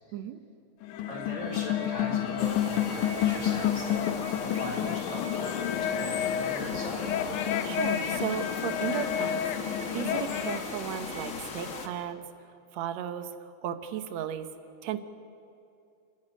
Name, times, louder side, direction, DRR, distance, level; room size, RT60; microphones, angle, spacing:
sound 1, 0.8-10.7, left 10 dB, 85° left, 2.4 m, -30 dB
voice 1, 1.0-4.0 4.3-7.1, left 1 dB, 25° left, -1 dB, 4.3 m, -40 dB
sound 2, 1.4-11.3, right 4 dB, 40° right, 2.1 m, -47 dB
sound 3, 2.4-11.9, left 4 dB, 45° left, 1.1 m, -39 dB
voice 2, 7.6-9.4 9.9-12.2 12.7-14.5 14.8-15.0, right 9 dB, 70° right, 10 dB, 2.2 m, -35 dB
29.0 x 10.5 x 9.9 m, 2.7 s
omnidirectional pair, 3.5 m